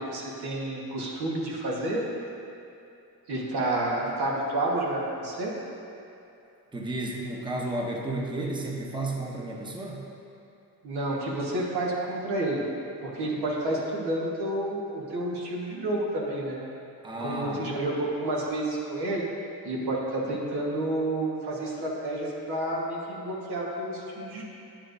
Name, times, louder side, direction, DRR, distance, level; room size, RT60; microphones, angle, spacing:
voice 1, 0.0-2.0 3.3-5.5 10.8-12.7 13.0-16.6 17.2-19.2 19.6-24.4, right 1 dB, 85° right, -3 dB, 1.5 m, -30 dB
voice 2, 6.7-10.1 17.0-17.6, right 2 dB, 10° right, -1 dB, 0.8 m, -32 dB
9.4 x 7.5 x 2.6 m, 2.7 s
cardioid pair, 105°, 37 cm